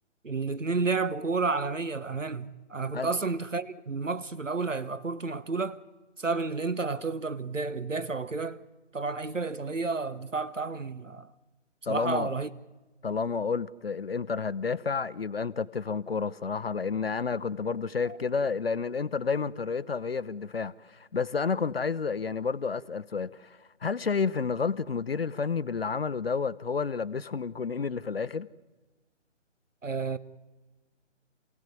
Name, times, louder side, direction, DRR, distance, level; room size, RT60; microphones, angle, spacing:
voice 1, 0.2-5.8 6.2-8.6 8.9-11.3 11.9-12.5 29.8-30.2, right 4 dB, 85° right, 1.1 m, -31 dB
voice 2, 11.9-12.3 13.0-28.5, left 5 dB, 55° left, 0.7 m, -30 dB
28.0 x 16.5 x 9.5 m
figure-of-eight pair, 145°, 37 cm